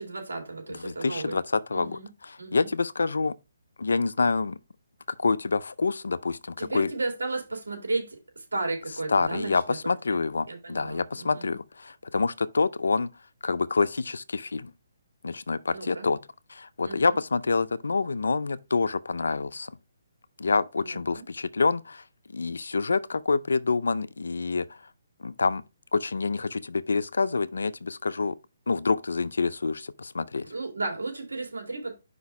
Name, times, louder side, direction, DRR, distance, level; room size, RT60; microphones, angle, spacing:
voice 1, 0.0-1.4 1.7-2.1 2.4-2.7 6.6-10.2 10.5-11.5 15.7-16.1 16.8-17.2 20.8-21.3 30.5-31.9, right 3 dB, 85° right, 2.4 m, -34 dB
voice 2, 0.8-3.4 3.8-4.6 5.2-6.9 9.1-13.1 13.4-14.7 15.2-16.2 16.5-19.8 20.4-22.0 22.3-24.8 25.2-25.6 25.9-28.4 28.7-30.5, left 4 dB, 80° left, 0.5 m, -27 dB
5.3 x 4.0 x 4.7 m
hypercardioid pair, 150°, 0 cm